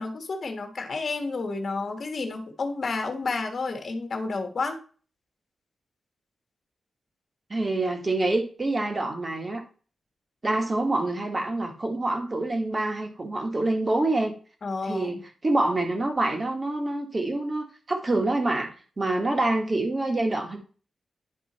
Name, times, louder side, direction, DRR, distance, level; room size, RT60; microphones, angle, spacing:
voice 1, 0.0-4.8 14.6-15.2, left 3 dB, 50° left, 5 dB, 1.5 m, -30 dB
voice 2, 7.5-9.6 10.4-14.3 14.8-20.6, right 2 dB, 25° right, 4 dB, 1.7 m, -26 dB
10.0 x 4.5 x 4.3 m, 0.38 s
wide cardioid pair, 130°, 0 cm